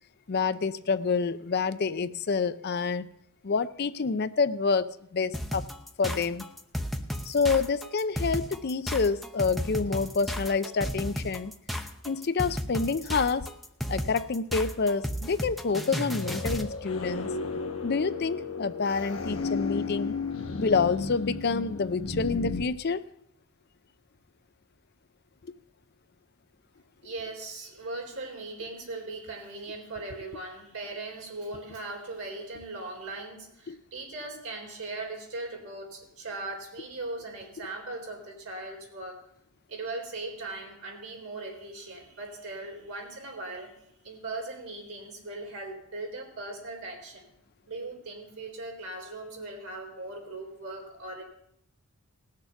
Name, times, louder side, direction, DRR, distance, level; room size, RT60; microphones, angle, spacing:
voice 1, 0.3-3.1 3.4-5.6 6.0-6.5 7.2-11.5 12.0-13.5 13.9-17.3 17.8-20.2 20.6-23.0 25.4-25.5 33.7-33.8, left 4 dB, 45° left, 13 dB, 0.5 m, -28 dB
sound 1, 5.3-16.7, equal, ahead, 0.7 m, -33 dB
sound 2, 16.2-22.6, left 4 dB, 70° left, 1.1 m, -33 dB
voice 2, 27.0-39.2 39.7-43.8 44.0-47.3 47.7-51.2, right 2 dB, 80° right, 0 dB, 3.8 m, -39 dB
18.5 x 6.7 x 5.8 m, 0.75 s
head